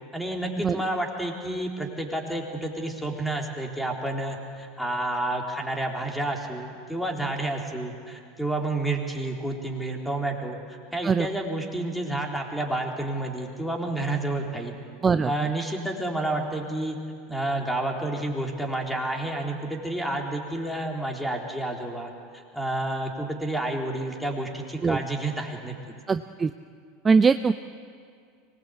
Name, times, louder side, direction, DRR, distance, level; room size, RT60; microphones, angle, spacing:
voice 1, 0.1-10.6 10.9-14.7 15.2-17.0 17.3-25.7, right 1 dB, ahead, 1 dB, 3.9 m, -30 dB
voice 2, 26.1-26.5 27.0-27.5, right 5 dB, 20° right, 11 dB, 0.6 m, -21 dB
24.5 x 20.0 x 8.4 m, 2.2 s
hypercardioid pair, 85°, 0 cm